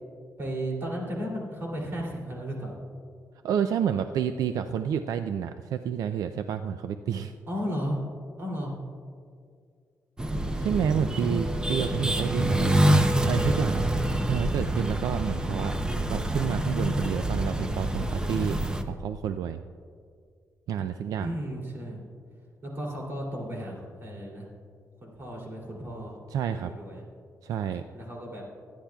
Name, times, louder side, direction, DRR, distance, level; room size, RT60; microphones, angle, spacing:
voice 1, 0.4-2.7 7.5-8.0 8.4-8.7 11.1-11.5 21.2-22.0 22.6-24.5 25.0-26.2 26.5-27.0 27.9-28.4, equal, 40° right, -2 dB, 2.9 m, -34 dB
voice 2, 3.4-7.3 10.6-15.7 16.1-18.6 18.9-19.6 20.7-21.4 26.3-26.7 27.4-27.8, right 8 dB, 80° right, 9 dB, 0.4 m, -29 dB
sound 1, 10.2-18.8, right 1 dB, 15° right, 0.6 m, -26 dB
23.0 x 10.0 x 2.3 m, 2.2 s
cardioid pair, 135°, 6 cm